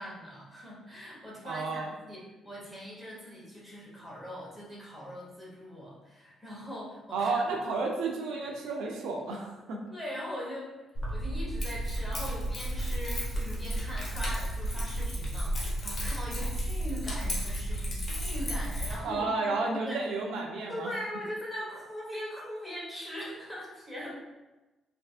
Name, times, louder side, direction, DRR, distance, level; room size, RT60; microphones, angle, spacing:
voice 1, 0.0-7.5 8.3-8.5 9.9-10.7 11.1-20.0 20.7-24.2, equal, ahead, -6 dB, 1.1 m, -41 dB
voice 2, 1.4-1.9 7.1-9.8 19.0-20.9, right 3 dB, 85° right, 0 dB, 0.4 m, -32 dB
Keys jangling, 10.9-18.9, right 1 dB, 40° left, 1.0 m, -32 dB
3.2 x 2.6 x 2.4 m, 1.1 s
cardioid pair, 90°, 0 cm